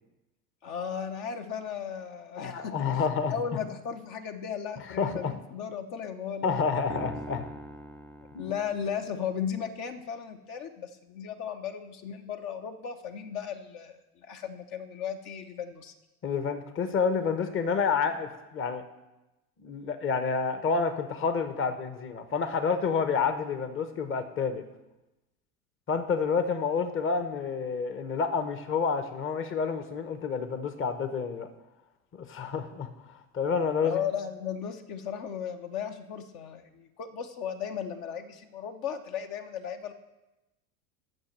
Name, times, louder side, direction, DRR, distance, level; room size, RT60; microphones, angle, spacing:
voice 1, 0.6-2.7 3.3-6.5 6.9-7.0 8.4-15.9 33.8-39.9, left 8 dB, 50° left, 5 dB, 1.1 m, -36 dB
voice 2, 2.4-3.3 4.9-5.3 6.4-7.4 8.3-8.5 16.2-18.8 19.6-24.6 25.9-31.5 32.1-32.9 33.3-34.0, left 5 dB, 25° left, 9 dB, 1.0 m, -29 dB
sound 1, 6.9-9.3, equal, 5° left, 0.4 m, -43 dB
9.2 x 6.4 x 7.4 m, 1.0 s
hypercardioid pair, 85°, 47 cm